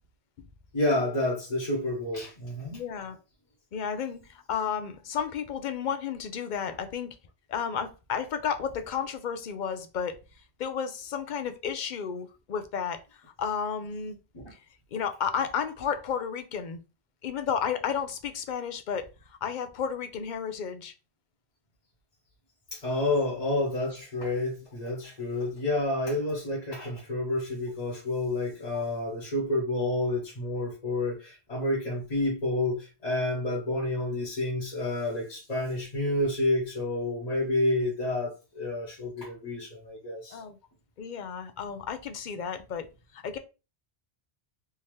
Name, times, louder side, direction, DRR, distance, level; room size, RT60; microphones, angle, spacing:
voice 1, 0.7-2.8 14.3-14.5 22.7-40.4, left 1 dB, 40° left, 1.1 m, -29 dB
voice 2, 2.7-3.2 3.7-7.2 7.5-10.2 10.6-13.0 13.4-14.2 14.5-14.6 14.9-16.8 17.2-20.9 28.7-28.8 40.3-40.6 41.0-42.9 43.1-43.4, left 7 dB, 55° left, 0.6 m, -32 dB
3.6 x 2.8 x 3.1 m
omnidirectional pair, 1.1 m